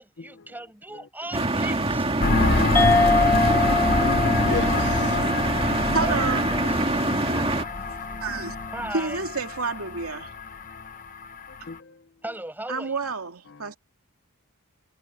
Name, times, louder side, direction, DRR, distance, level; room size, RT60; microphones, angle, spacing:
voice 1, 0.0-2.0 6.0-6.8 8.7-9.3 12.2-13.1, right 1 dB, 10° right, 7.8 m, -37 dB
sound 1, 1.3-7.6, right 2 dB, 25° right, 2.1 m, -25 dB
sound 2, 2.2-11.7, left 3 dB, 35° left, 1.1 m, -27 dB
sound 3, 2.8-7.7, left 3 dB, 10° left, 0.4 m, -26 dB
voice 2, 3.1-5.2 11.7-12.0, left 4 dB, 55° left, 0.7 m, -36 dB
voice 3, 5.9-6.5 6.8-10.3 11.6-11.7 12.7-13.8, right 4 dB, 70° right, 2.6 m, -31 dB
head